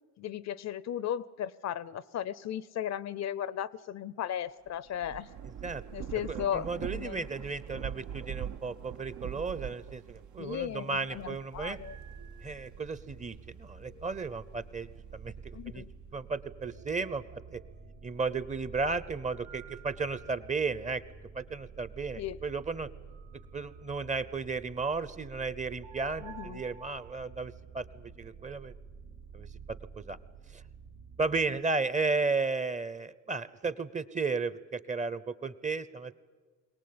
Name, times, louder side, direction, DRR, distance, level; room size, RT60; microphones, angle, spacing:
voice 1, 0.2-5.3 5.9-7.3 10.4-12.0 15.5-15.9 22.2-22.4 26.2-26.6, left 10 dB, 60° left, 20 dB, 0.7 m, -36 dB
Thunder / Rain, 4.7-13.6 14.1-15.5, right 9 dB, 70° right, 0.8 m, -43 dB
voice 2, 6.3-11.8 12.4-15.8 16.1-17.6 18.0-21.0 21.3-22.9 23.5-28.7 29.3-30.2 30.5-30.6 31.2-36.1, right 4 dB, 25° right, 16 dB, 0.7 m, -34 dB
sound 1, 11.5-31.5, right 5 dB, 90° right, 2.2 m, -49 dB
22.5 x 18.5 x 8.7 m, 1.4 s
cardioid pair, 90°, 30 cm